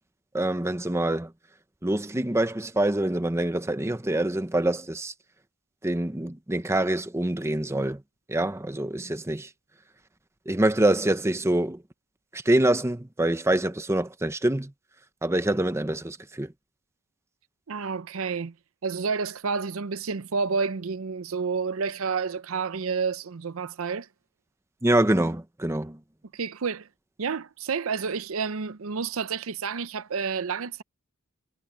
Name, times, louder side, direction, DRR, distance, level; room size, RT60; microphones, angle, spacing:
voice 1, 0.3-1.3 1.8-5.1 5.8-8.0 8.3-9.5 10.5-11.8 12.3-14.7 15.2-16.5 24.8-26.0, right 1 dB, 15° right, 0.8 m, -25 dB
voice 2, 17.7-18.5 18.8-24.1 26.3-26.9 27.2-30.8, right 5 dB, 70° right, 0.6 m, -30 dB
head